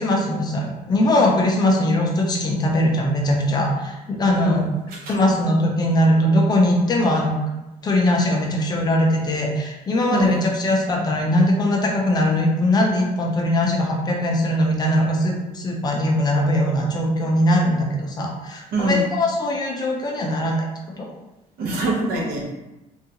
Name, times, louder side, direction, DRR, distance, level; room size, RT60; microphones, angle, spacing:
voice 1, 0.0-4.6 5.1-7.4 7.8-20.6 21.0-21.1, left 1 dB, 25° left, 0 dB, 0.4 m, -20 dB
voice 2, 18.7-19.0 21.6-22.5, right 2 dB, 80° right, -1 dB, 0.8 m, -23 dB
3.6 x 2.3 x 2.8 m, 0.99 s
cardioid pair, 180°, 15 cm